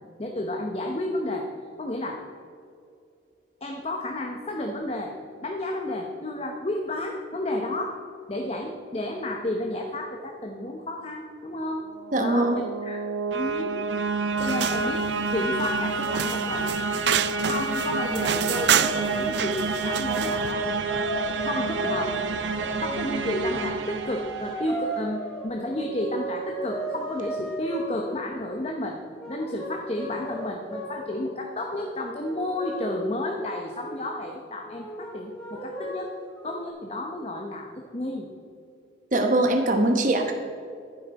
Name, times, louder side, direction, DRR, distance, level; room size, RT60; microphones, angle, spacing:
voice 1, 0.2-1.5 1.8-2.2 3.6-5.1 5.4-8.0 8.3-11.9 12.2-13.0 13.3-13.8 14.4-15.1 15.3-16.7 17.4-20.7 21.4-22.2 22.8-29.0 29.3-36.1 36.4-38.3, left 1 dB, 35° left, 2 dB, 0.9 m, -31 dB
sound 1, 11.9-24.9, right 3 dB, 85° right, 0.9 m, -29 dB
voice 2, 12.1-12.6 39.1-40.3, right 1 dB, 45° right, 3 dB, 1.0 m, -22 dB
sound 2, 14.4-20.5, right 9 dB, 65° right, 0.5 m, -29 dB
sound 3, 18.2-18.5 18.8-19.4 19.9-23.2 23.9-28.2 29.2-31.2 31.6-31.9 32.2-34.2 34.7-36.7, right 1 dB, 5° left, 3.1 m, -36 dB
11.5 x 10.0 x 4.1 m, 2.4 s
head